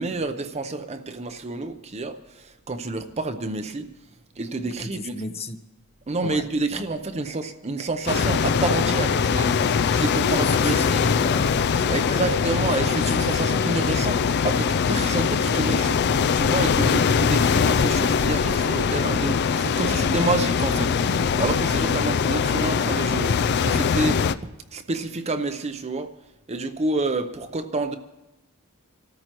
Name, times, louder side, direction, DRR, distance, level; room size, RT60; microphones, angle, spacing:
voice 1, 0.0-3.9 4.4-5.2 6.1-11.0 11.9-16.0 16.3-20.9 21.4-23.4 23.6-24.2 24.7-26.1 26.5-28.0, right 3 dB, 30° right, 8 dB, 0.7 m, -28 dB
voice 2, 4.6-5.6 6.2-6.8 10.3-11.6 11.9-12.3 12.8-13.0, left 2 dB, 30° left, 9 dB, 0.8 m, -33 dB
sound 1, 8.1-24.3, left 6 dB, 50° left, 0.4 m, -22 dB
27.5 x 13.5 x 3.0 m, 0.99 s
head